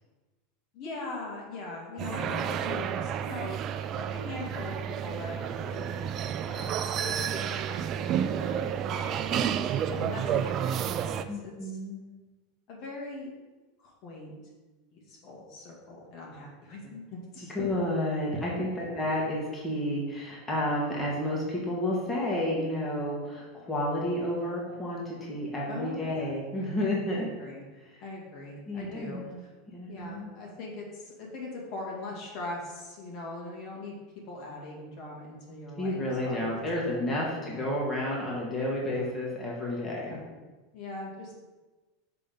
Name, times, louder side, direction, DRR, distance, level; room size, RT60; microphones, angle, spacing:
voice 1, 0.7-6.2 6.4-11.7 12.7-13.3 13.8-14.3 14.9-17.7 18.8-19.1 25.7-26.3 27.1-27.6 28.0-29.5 29.9-33.9 34.3-36.4 37.4-37.7 38.9-39.1 39.8-40.2 40.7-41.4, left 2 dB, 55° left, -2 dB, 2.1 m, -41 dB
voice 2, 2.0-2.5 9.9-10.4 11.3-12.0 17.5-27.3 27.8-28.0 28.7-29.4 29.7-30.3 35.8-40.2, left 1 dB, 20° left, -4 dB, 1.7 m, -31 dB
sound 1, 2.0-11.2, right 9 dB, 45° right, 0.4 m, -31 dB
6.7 x 3.7 x 5.3 m, 1.2 s
hypercardioid pair, 110°, 0 cm